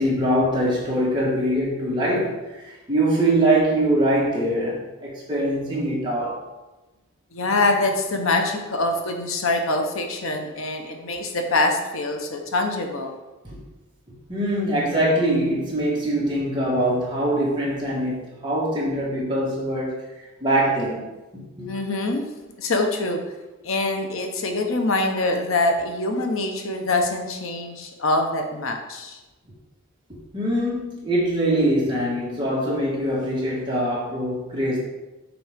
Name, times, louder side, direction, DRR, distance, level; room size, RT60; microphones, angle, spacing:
voice 1, 0.0-6.4 13.5-13.6 14.3-20.1 20.4-21.1 21.3-21.7 30.3-34.8, right 1 dB, 20° right, -5 dB, 1.9 m, -23 dB
voice 2, 7.3-13.2 21.7-22.3 22.6-23.2 23.6-29.2, left 2 dB, 75° left, 4 dB, 0.9 m, -24 dB
6.0 x 4.2 x 5.1 m, 1.1 s
head